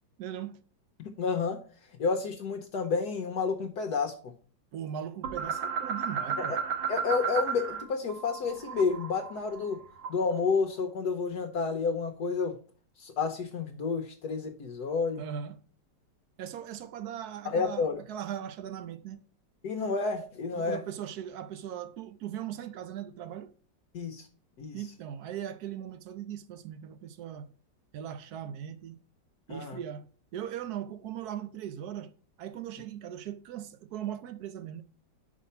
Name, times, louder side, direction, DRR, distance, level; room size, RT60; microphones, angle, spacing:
voice 1, 0.2-0.6 4.7-6.6 15.2-15.6 16.4-19.2 20.5-23.5 24.7-27.5 27.9-29.0 29.5-30.1 30.3-32.1 32.4-34.8, right 10 dB, 70° right, 1.0 m, -39 dB
voice 2, 1.0-1.6 2.0-4.3 6.4-6.6 6.9-9.8 10.1-12.6 13.0-15.2 17.4-18.0 19.6-20.8 23.9-24.3 24.6-24.8 29.5-29.8, left 5 dB, 65° left, 1.2 m, -30 dB
sound 1, 5.2-7.8 8.1-10.4, right 6 dB, 85° right, 1.7 m, -33 dB
5.6 x 5.0 x 5.5 m
omnidirectional pair, 2.0 m